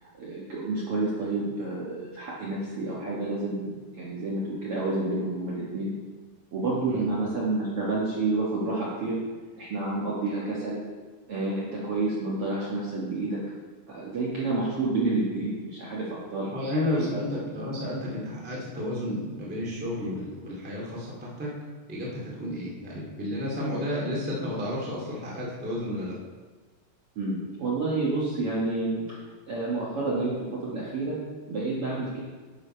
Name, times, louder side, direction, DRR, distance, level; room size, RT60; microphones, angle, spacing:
voice 1, 0.0-5.9 6.5-9.2 9.6-10.8 11.3-13.4 13.9-16.5 16.9-17.1 27.1-29.2 29.5-31.2 31.5-32.2, right 2 dB, 60° right, -6 dB, 1.5 m, -29 dB
voice 2, 16.5-21.5 21.9-26.1, left 1 dB, 10° right, -5 dB, 0.5 m, -32 dB
10.5 x 6.4 x 4.4 m, 1.4 s
omnidirectional pair, 4.6 m